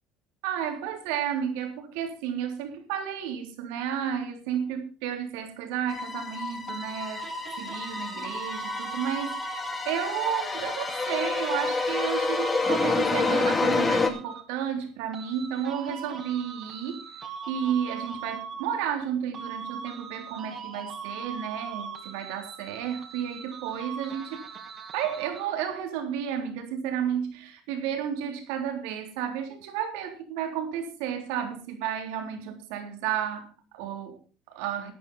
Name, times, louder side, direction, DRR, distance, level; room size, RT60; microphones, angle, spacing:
voice 1, 0.4-7.3 7.6-17.0 17.5-24.4 24.9-34.9, right 9 dB, 80° right, 5 dB, 3.5 m, -32 dB
sound 1, 5.9-14.1, left 3 dB, 20° left, 2.5 m, -28 dB
sound 2, 6.7-10.0 10.9-14.7 15.1-19.1 19.3-25.7, right 6 dB, 40° right, 2.8 m, -40 dB
13.0 x 9.5 x 5.4 m, 0.35 s
cardioid pair, 125°, 0 cm